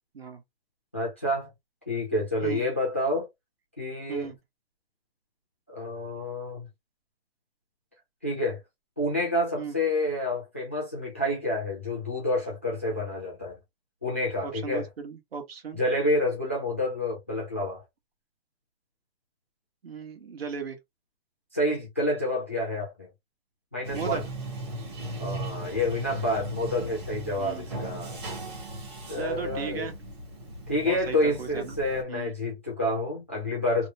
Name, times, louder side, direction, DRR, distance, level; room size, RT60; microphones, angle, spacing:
voice 1, 0.9-1.5 1.9-3.3 3.8-4.3 5.7-6.7 8.2-8.6 9.0-13.6 14.0-14.8 15.7-17.8 21.5-23.1 23.7-24.2 25.2-28.2 29.1-29.9 30.7-33.9, left 1 dB, 15° left, 0.4 m, -28 dB
voice 2, 14.4-15.8 19.8-20.8 23.9-24.2 27.4-27.7 28.5-28.6 29.2-29.9 30.8-31.8 32.1-32.3, right 6 dB, 75° right, 1.2 m, -36 dB
Bathtub (filling or washing), 23.8-32.0, right 1 dB, 25° right, 0.8 m, -37 dB
2.9 x 2.1 x 2.7 m
hypercardioid pair, 170°, 31 cm